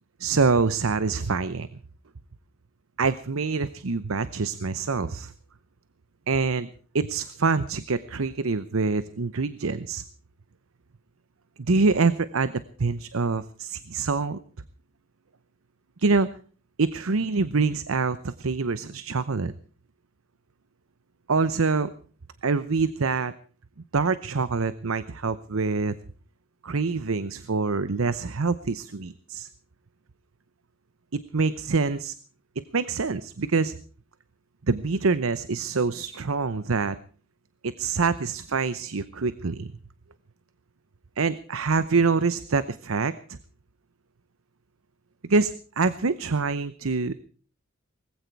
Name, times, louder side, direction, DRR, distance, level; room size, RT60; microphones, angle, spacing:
voice 1, 0.2-1.7 3.0-5.3 6.3-6.7 6.9-10.0 11.6-14.4 16.0-16.3 16.8-19.5 21.3-21.9 22.4-23.3 23.9-25.9 26.6-29.5 31.1-32.1 32.7-33.7 34.7-37.0 37.6-39.7 41.2-43.4 45.3-47.1, right 4 dB, 75° right, 15 dB, 0.8 m, -25 dB
19.5 x 15.5 x 4.6 m, 0.42 s
head